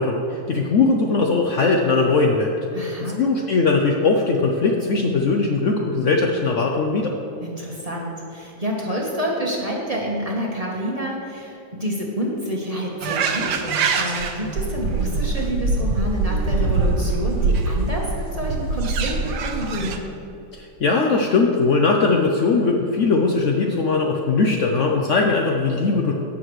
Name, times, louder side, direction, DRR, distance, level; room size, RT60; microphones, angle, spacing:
voice 1, 0.0-2.6 3.2-7.1 20.5-26.1, left 3 dB, 60° left, 1 dB, 0.8 m, -20 dB
voice 2, 2.7-3.2 7.4-20.0, equal, 25° right, -3 dB, 1.1 m, -28 dB
sound 1, 13.0-20.0, right 3 dB, 85° right, 1.4 m, -23 dB
16.5 x 6.2 x 3.1 m, 3.0 s
omnidirectional pair, 1.8 m